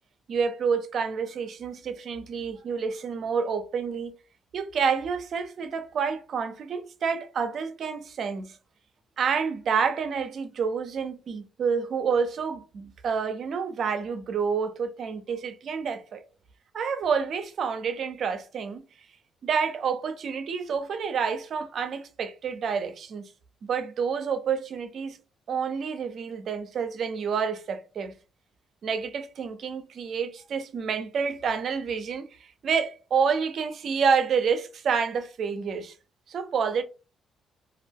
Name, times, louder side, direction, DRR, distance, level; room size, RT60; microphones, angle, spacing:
voice 1, 0.3-4.1 4.5-8.6 9.2-16.2 16.7-18.8 19.4-23.3 23.6-25.2 25.5-28.1 28.8-32.3 32.6-35.9 36.3-36.8, right 6 dB, 60° right, 0.4 m, -28 dB
2.3 x 2.0 x 3.4 m
cardioid pair, 90°, 0 cm